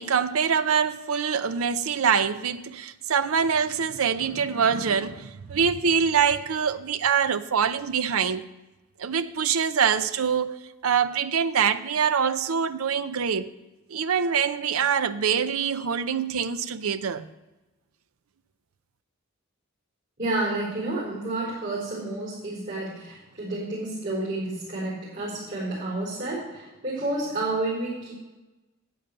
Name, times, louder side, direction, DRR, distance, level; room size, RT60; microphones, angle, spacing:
voice 1, 0.0-8.4 9.0-13.5 13.9-17.3, right 7 dB, 85° right, 0.6 m, -24 dB
voice 2, 20.2-28.1, right 2 dB, 55° right, 4.2 m, -30 dB
10.5 x 8.5 x 6.6 m
head